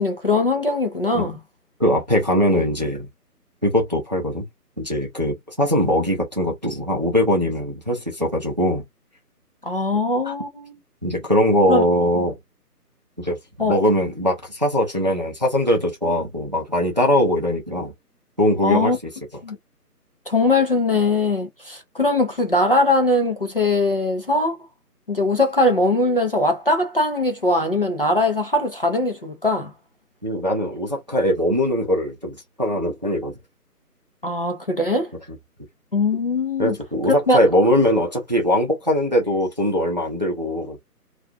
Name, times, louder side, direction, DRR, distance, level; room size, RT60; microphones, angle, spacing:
voice 1, 0.0-1.4 9.6-10.7 11.7-11.8 13.6-13.8 18.6-19.0 19.4-19.6 20.3-24.6 25.1-29.7 34.2-35.1 35.9-36.8 37.1-37.4, left 2 dB, 35° left, 0.5 m, -21 dB
voice 2, 1.8-3.1 3.6-4.5 4.8-8.8 10.2-10.3 11.0-12.4 13.2-17.9 18.4-18.9 30.2-33.3 36.6-40.8, equal, 30° right, 0.5 m, -21 dB
2.3 x 2.3 x 2.6 m
figure-of-eight pair, 155°, 48 cm